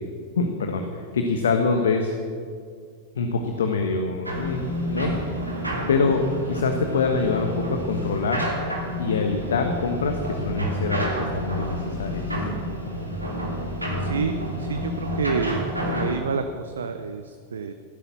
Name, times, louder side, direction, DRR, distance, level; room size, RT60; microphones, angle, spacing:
voice 1, 0.4-2.1 3.1-5.1 5.5-8.5 9.0-12.5, left 4 dB, 65° left, 5 dB, 1.2 m, -25 dB
sound 1, 4.3-16.2, equal, 85° right, 2.9 m, -29 dB
voice 2, 13.6-17.7, right 5 dB, 70° right, 8 dB, 0.7 m, -29 dB
15.0 x 11.0 x 7.2 m, 2.1 s
figure-of-eight pair, 90°, 0 cm